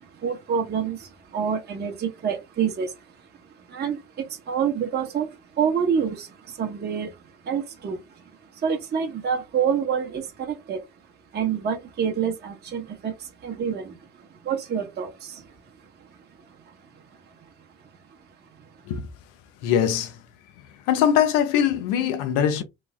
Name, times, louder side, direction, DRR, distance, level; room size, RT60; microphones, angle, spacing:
voice 1, 0.0-3.3 3.7-10.9 11.3-15.5 16.0-16.1 16.4-17.0, right 7 dB, 35° right, 0.8 m, -28 dB
voice 2, 19.6-20.2 20.7-22.6, left 9 dB, 90° left, 0.7 m, -22 dB
3.1 x 2.0 x 3.6 m
cardioid pair, 105°, 31 cm